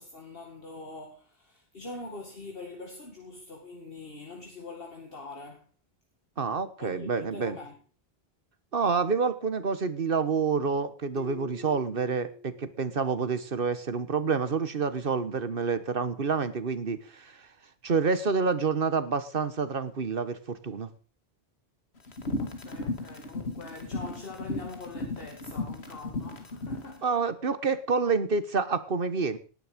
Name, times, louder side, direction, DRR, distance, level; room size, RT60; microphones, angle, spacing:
voice 1, 0.0-5.7 6.8-7.8 22.4-27.1, left 3 dB, 65° left, 2.3 m, -43 dB
voice 2, 6.4-7.6 8.7-17.5 17.8-20.9 27.0-29.4, right 5 dB, 60° right, 1.5 m, -28 dB
sound 1, 11.2-13.7, left 1 dB, 15° right, 3.1 m, -47 dB
sound 2, 22.1-26.9, left 2 dB, 85° left, 2.4 m, -35 dB
18.5 x 10.0 x 5.2 m
omnidirectional pair, 1.0 m